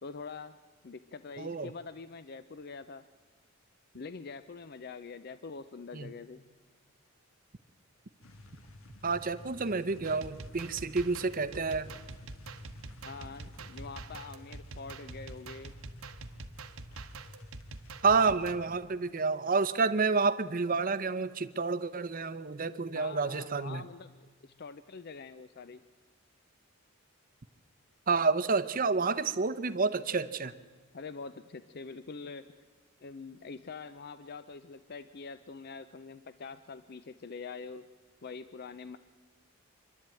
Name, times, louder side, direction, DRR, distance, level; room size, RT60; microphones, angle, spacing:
voice 1, 0.0-0.6 0.8-3.0 3.9-6.4 13.0-15.7 22.9-25.8 30.9-32.5 33.0-37.9 38.2-39.0, left 4 dB, 45° left, 13 dB, 0.5 m, -45 dB
voice 2, 1.4-1.7 5.9-6.1 9.0-11.9 18.0-23.8 28.1-30.5, right 4 dB, 40° right, 12 dB, 0.8 m, -29 dB
sound 1, 8.2-18.8, left 1 dB, 70° left, 1.7 m, -52 dB
sound 2, 10.0-18.5, right 3 dB, 70° right, 1.2 m, -46 dB
25.0 x 12.0 x 9.0 m, 1.4 s
head